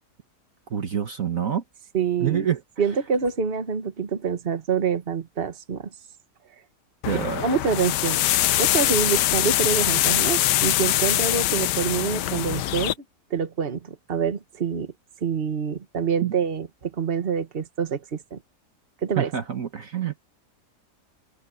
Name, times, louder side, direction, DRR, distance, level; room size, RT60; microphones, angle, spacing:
voice 1, 0.7-1.6 2.2-2.6 7.0-7.5 16.2-16.3 19.2-20.2, right 9 dB, 55° right, 1.6 m, -26 dB
voice 2, 1.9-2.5 2.8-5.9 7.4-8.2 8.6-12.9 13.3-14.9 15.2-18.4 19.0-19.3, right 6 dB, 35° right, 1.6 m, -26 dB
sound 1, 7.0-12.9, left 14 dB, 90° left, 1.2 m, -23 dB
omnidirectional pair, 1.8 m